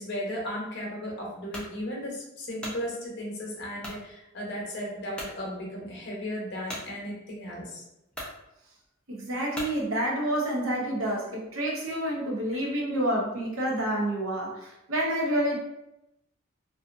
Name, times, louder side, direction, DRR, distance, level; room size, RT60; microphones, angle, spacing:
voice 1, 0.0-7.8, equal, 55° left, -3 dB, 0.8 m, -35 dB
sound 1, 1.5-1.7 2.3-2.8 3.8-4.0 4.6-4.7 5.1-5.4 6.7-6.9 7.7-7.8 8.1-8.4 9.5-9.8, left 1 dB, 5° left, 0.4 m, -38 dB
voice 2, 9.1-15.6, right 1 dB, 75° right, -2 dB, 0.7 m, -28 dB
2.5 x 2.4 x 2.5 m, 0.87 s
head